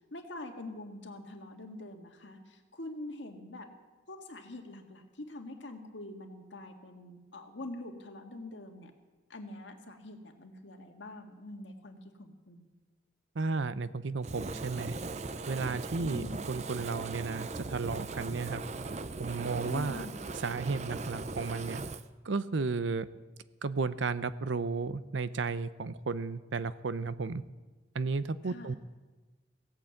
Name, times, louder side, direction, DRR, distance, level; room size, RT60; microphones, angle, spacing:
voice 1, 0.1-3.7 4.1-8.9 9.3-12.7 16.0-16.5 19.7-20.2 28.5-28.8, left 2 dB, 80° left, 4 dB, 1.8 m, -45 dB
voice 2, 13.4-15.0 15.5-18.6 19.2-20.1 20.4-21.8 22.2-23.1 23.6-27.4 27.9-28.8, right 4 dB, 85° right, 15 dB, 0.6 m, -33 dB
Fire, 14.2-22.0, right 3 dB, 35° right, 0.5 m, -39 dB
16.5 x 8.7 x 7.8 m, 1.3 s
head